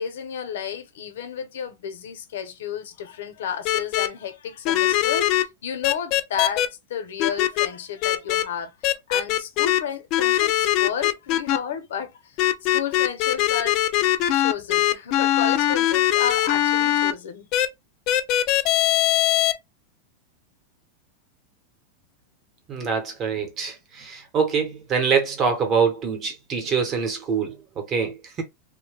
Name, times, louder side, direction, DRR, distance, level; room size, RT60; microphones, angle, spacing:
voice 1, 0.0-8.7 9.1-13.8 14.3-17.5, left 8 dB, 85° left, 0.7 m, -32 dB
sound 1, 3.7-4.1 4.7-5.4 5.8-6.7 7.2-7.7 8.0-8.4 8.8-9.8 10.1-11.6 12.4-17.1 17.5-17.7 18.1-19.5, left 13 dB, 40° left, 0.4 m, -21 dB
voice 2, 22.7-28.4, right 6 dB, 25° right, 0.9 m, -25 dB
2.7 x 2.1 x 3.2 m
supercardioid pair, 155°, 0 cm